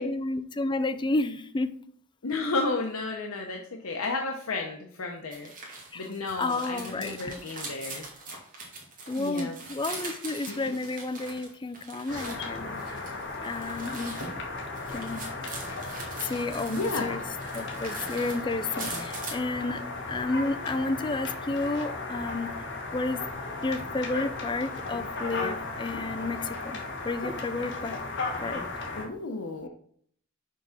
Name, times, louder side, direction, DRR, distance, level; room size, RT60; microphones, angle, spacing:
voice 1, 0.0-1.8 5.9-6.0 6.4-7.3 9.1-13.0 13.4-14.2 14.9-15.2 16.2-17.2 17.5-19.8 20.1-22.5 22.9-23.2 23.6-28.0 28.4-28.6, left 2 dB, 20° left, 12 dB, 0.4 m, -31 dB
voice 2, 2.2-5.5 5.9-8.1 9.1-9.6 10.5-10.6 16.7-17.1 28.9-29.7, left 3 dB, 90° left, 2 dB, 0.8 m, -32 dB
sound 1, 5.3-12.4 12.7-17.1 17.4-19.4, right 3 dB, 40° right, 2.0 m, -42 dB
sound 2, 12.1-29.0, left 3 dB, 60° left, 1.6 m, -36 dB
6.0 x 4.7 x 5.8 m, 0.62 s
head